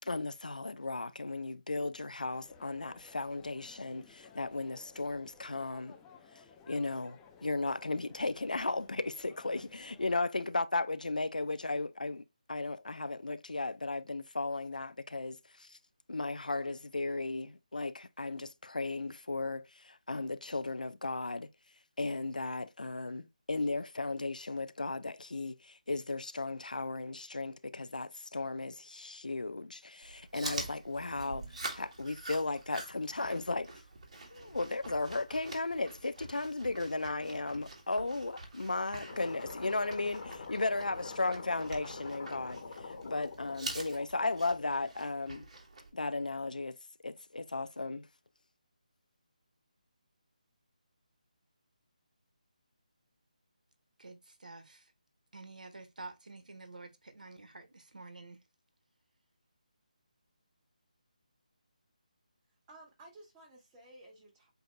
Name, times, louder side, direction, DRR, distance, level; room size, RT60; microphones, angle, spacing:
voice 1, 0.0-6.0 6.7-15.8 16.1-21.5 22.0-33.8 34.3-45.5 45.9-46.8 47.0-48.1, left 3 dB, 85° left, 0.6 m, -35 dB
sound 1, 2.3-10.2, left 6 dB, 10° left, 0.5 m, -58 dB
Chewing mastication, 30.0-45.9, right 2 dB, 50° right, 2.0 m, -46 dB
sound 2, 39.1-44.9, left 4 dB, 50° left, 1.4 m, -46 dB
voice 2, 54.0-54.8 55.3-58.4, right 3 dB, 75° right, 1.3 m, -49 dB
voice 3, 62.7-64.5, right 1 dB, 20° right, 1.9 m, -55 dB
7.9 x 2.8 x 2.2 m
figure-of-eight pair, 160°, 4 cm